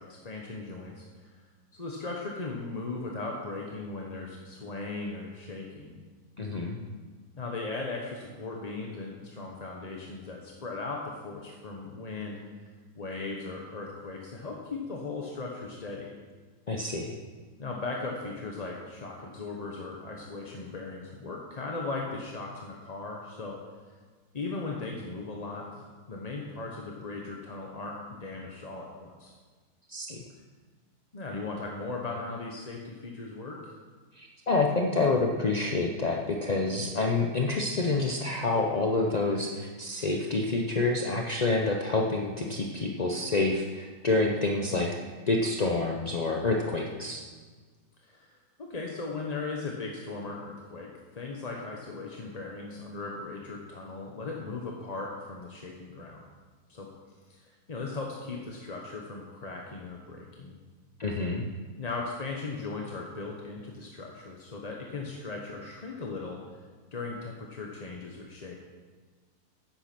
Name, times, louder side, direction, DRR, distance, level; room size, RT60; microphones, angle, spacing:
voice 1, 0.0-1.4 1.7-5.9 7.4-12.4 12.9-16.1 17.6-23.6 23.9-24.0 24.3-29.3 31.1-33.7 48.1-56.2 56.7-56.9 57.3-60.6 61.8-66.4 66.9-68.6, left 3 dB, 30° left, -1 dB, 0.8 m, -38 dB
voice 2, 6.4-6.8 16.7-17.1 29.9-30.2 34.1-44.9 45.3-47.2 61.0-61.4, left 3 dB, 60° left, 1 dB, 0.4 m, -28 dB
10.5 x 8.6 x 5.9 m, 1.4 s
omnidirectional pair, 1.8 m